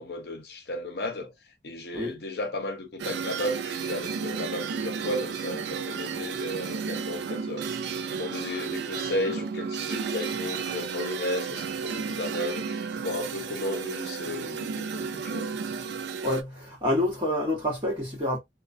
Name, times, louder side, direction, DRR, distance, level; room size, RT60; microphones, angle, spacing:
voice 1, 0.0-1.3 1.6-15.5, left 1 dB, 70° left, 0.7 m, -34 dB
sound 1, 3.0-16.4, right 6 dB, 80° right, 0.3 m, -33 dB
voice 2, 16.2-18.4, left 1 dB, 25° right, 1.1 m, -27 dB
2.3 x 2.1 x 2.5 m
head